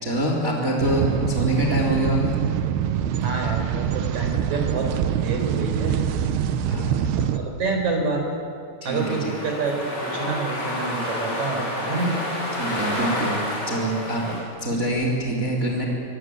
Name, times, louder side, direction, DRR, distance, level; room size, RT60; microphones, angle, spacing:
voice 1, 0.0-2.3 6.7-7.1 8.8-9.3 12.5-13.3 13.7-14.2 14.6-15.8, right 1 dB, 20° right, 0 dB, 3.4 m, -25 dB
sound 1, 0.8-7.4, right 9 dB, 70° right, 2.7 m, -24 dB
voice 2, 3.2-4.9 5.2-6.0 7.2-8.2 8.8-9.8 10.0-12.1 14.3-14.4, right 3 dB, 35° right, 3 dB, 5.3 m, -27 dB
sound 2, 9.0-14.4, left 1 dB, 20° left, 7.6 m, -29 dB
25.0 x 23.0 x 9.6 m, 2.5 s
omnidirectional pair, 5.8 m